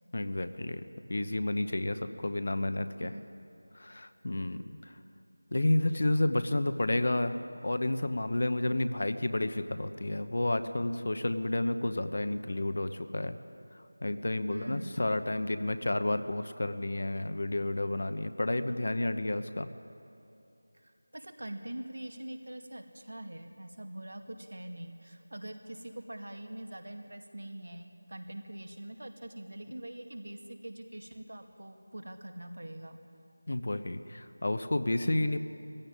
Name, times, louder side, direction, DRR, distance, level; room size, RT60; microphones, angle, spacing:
voice 1, 0.1-0.8 1.1-3.1 3.7-4.6 5.5-7.4 7.6-13.4 14.0-19.7 33.5-35.4, left 1 dB, 45° left, 10 dB, 0.9 m, -30 dB
voice 2, 14.5-15.0 20.7-33.0, right 1 dB, 75° right, 5 dB, 2.2 m, -43 dB
18.5 x 16.0 x 9.9 m, 2.8 s
figure-of-eight pair, 180°, 0 cm